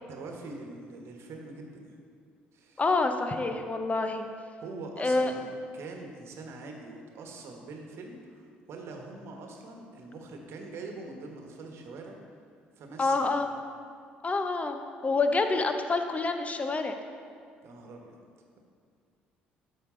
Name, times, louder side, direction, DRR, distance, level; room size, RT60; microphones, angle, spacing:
voice 1, 0.0-2.0 2.5-2.8 4.6-12.2 12.8-13.5 17.6-18.2, right 3 dB, 55° right, 2 dB, 1.3 m, -43 dB
voice 2, 2.8-4.2 5.0-5.3 13.0-13.5 14.2-16.9, left 3 dB, 25° left, 7 dB, 0.8 m, -27 dB
13.0 x 5.0 x 3.8 m, 2.2 s
figure-of-eight pair, 50°, 5 cm